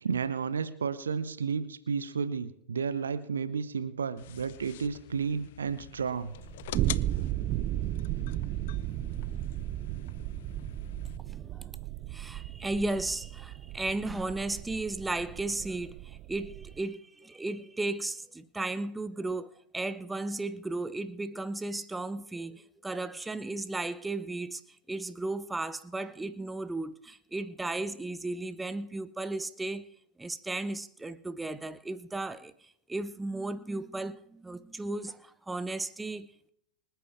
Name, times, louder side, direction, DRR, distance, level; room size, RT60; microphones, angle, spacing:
voice 1, 0.0-6.4, right 6 dB, 70° right, 0.9 m, -32 dB
sound 1, 4.2-11.2, left 14 dB, 55° left, 0.4 m, -45 dB
sound 2, 6.3-16.8, right 14 dB, 40° right, 0.4 m, -35 dB
voice 2, 11.2-11.8 12.1-24.6 24.9-29.9 30.2-36.5, right 2 dB, 10° right, 0.8 m, -35 dB
25.5 x 9.1 x 3.5 m
figure-of-eight pair, 90°, 0 cm